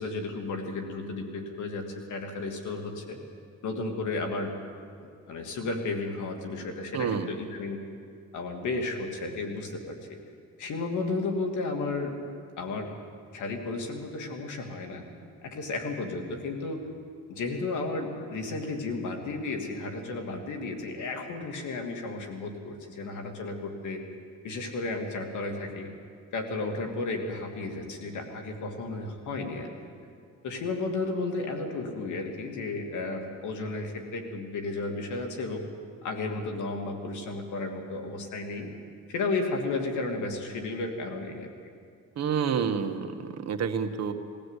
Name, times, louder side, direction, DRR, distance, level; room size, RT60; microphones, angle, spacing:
voice 1, 0.0-3.2 3.6-4.6 5.0-7.8 8.3-10.2 10.6-12.1 12.6-12.9 13.3-15.0 15.4-16.8 17.3-24.0 24.4-25.9 26.3-29.7 30.4-35.6 36.0-38.7 39.1-41.5, left 3 dB, 75° left, 3 dB, 2.8 m, -33 dB
voice 2, 6.9-7.3 42.2-44.1, right 6 dB, 60° right, 6 dB, 1.5 m, -29 dB
21.0 x 15.5 x 8.3 m, 2.3 s
cardioid pair, 90°, 30 cm